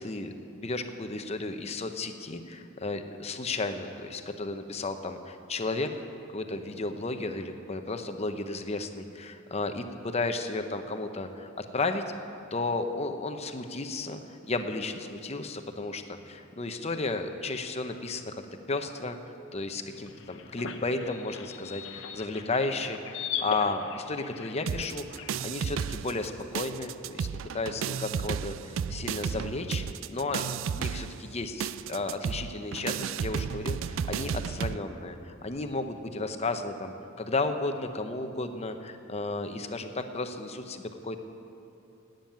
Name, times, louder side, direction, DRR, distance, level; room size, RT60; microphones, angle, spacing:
voice 1, 0.0-5.9 6.3-12.0 12.5-18.4 18.7-19.2 19.5-30.5 30.7-41.2, left 3 dB, 30° left, 7 dB, 0.8 m, -33 dB
sound 1, 19.9-25.4, left 7 dB, 65° left, 0.8 m, -39 dB
sound 2, 24.7-26.3 26.5-34.8, right 7 dB, 70° right, 0.3 m, -33 dB
13.0 x 9.1 x 9.1 m, 2.6 s
head